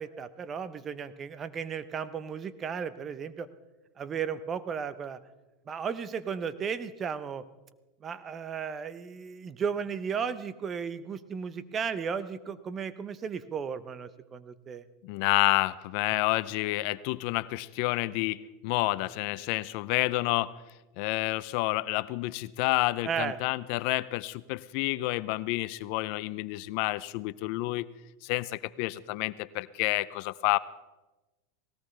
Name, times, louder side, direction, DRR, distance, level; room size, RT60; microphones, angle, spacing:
voice 1, 0.0-3.5 4.0-5.2 5.7-7.4 8.0-14.8 23.0-23.4, right 6 dB, 25° right, 14 dB, 0.8 m, -35 dB
voice 2, 15.0-20.5 21.0-27.9 28.2-30.6, left 20 dB, 60° left, 18 dB, 0.5 m, -29 dB
19.0 x 17.5 x 3.3 m, 1.1 s
hypercardioid pair, 115°, 0 cm